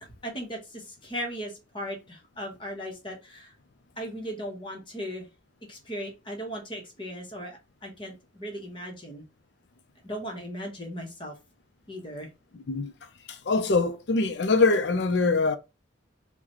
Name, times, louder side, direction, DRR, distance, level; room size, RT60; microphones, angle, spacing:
voice 1, 0.2-3.5 4.0-5.3 5.7-9.2 10.0-11.3 11.9-12.3, equal, 25° left, 1.0 m, -37 dB
voice 2, 12.5-12.9 13.3-15.6, left 3 dB, 65° left, 0.5 m, -24 dB
3.8 x 2.2 x 3.0 m
head